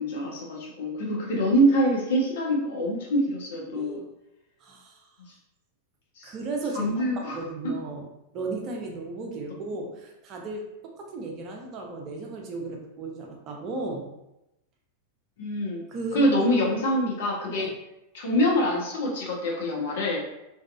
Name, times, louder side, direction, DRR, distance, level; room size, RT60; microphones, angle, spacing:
voice 1, 0.0-4.0 6.2-6.3 6.7-7.4 7.6-7.8 15.4-15.8 16.1-17.7 18.1-20.2, equal, 55° left, -2 dB, 0.7 m, -25 dB
voice 2, 3.7-4.0 4.6-5.1 6.2-8.1 8.3-14.1 15.9-16.5 17.6-17.7, right 3 dB, 35° right, 1 dB, 0.5 m, -35 dB
2.7 x 2.3 x 2.3 m, 0.90 s
figure-of-eight pair, 90°, 0 cm